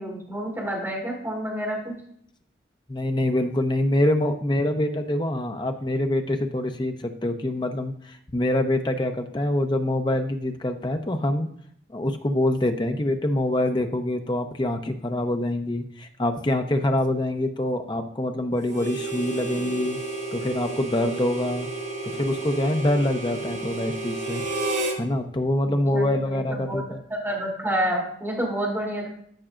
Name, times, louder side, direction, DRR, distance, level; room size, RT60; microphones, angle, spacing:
voice 1, 0.0-1.9 25.6-26.8 27.1-29.1, right 1 dB, 15° right, -3 dB, 2.9 m, -29 dB
voice 2, 2.9-11.5 11.9-20.0 20.3-21.7 22.1-24.4 25.0-27.0, left 1 dB, 25° left, 6 dB, 0.6 m, -25 dB
Harmonica, 18.7-25.0, right 2 dB, 75° right, 2.4 m, -31 dB
13.0 x 6.0 x 2.5 m, 0.65 s
head